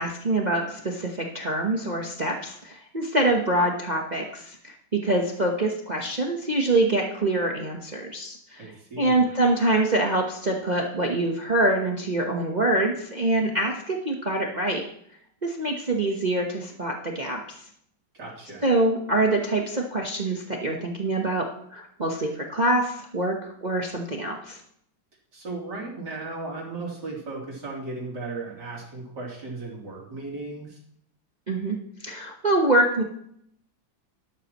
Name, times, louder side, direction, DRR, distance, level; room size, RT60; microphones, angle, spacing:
voice 1, 0.0-8.7 9.0-14.8 15.4-17.6 18.6-24.6 31.5-31.8 32.0-33.0, right 2 dB, 30° right, 1 dB, 1.0 m, -25 dB
voice 2, 8.6-9.3 18.1-18.6 25.3-30.8, right 3 dB, 65° right, -3 dB, 3.8 m, -36 dB
12.5 x 11.5 x 3.0 m, 0.68 s
omnidirectional pair, 2.0 m